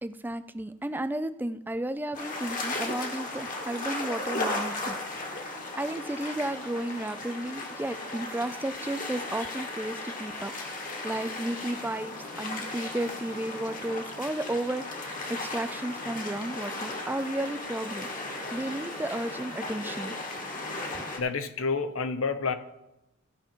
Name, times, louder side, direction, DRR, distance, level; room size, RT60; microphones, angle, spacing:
voice 1, 0.0-5.0 5.8-10.5 11.0-18.1 18.3-20.1 21.0-21.1, right 1 dB, 10° right, 12 dB, 0.4 m, -33 dB
sound 1, 2.1-21.2, left 2 dB, 40° left, 1.4 m, -36 dB
voice 2, 20.9-22.5, left 4 dB, 65° left, 10 dB, 0.8 m, -29 dB
15.0 x 5.8 x 4.4 m, 0.91 s
head